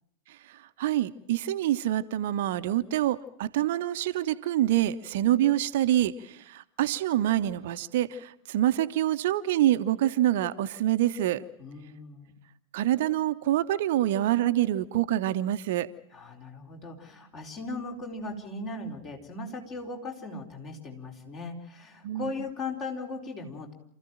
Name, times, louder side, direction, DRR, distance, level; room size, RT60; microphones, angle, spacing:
voice 1, 0.5-11.4 12.7-15.9 22.0-22.3, right 13 dB, 55° right, 0.9 m, -26 dB
voice 2, 11.6-12.4 16.1-23.7, left 3 dB, 30° left, 4.4 m, -38 dB
28.0 x 15.0 x 9.0 m
figure-of-eight pair, 90°, 0 cm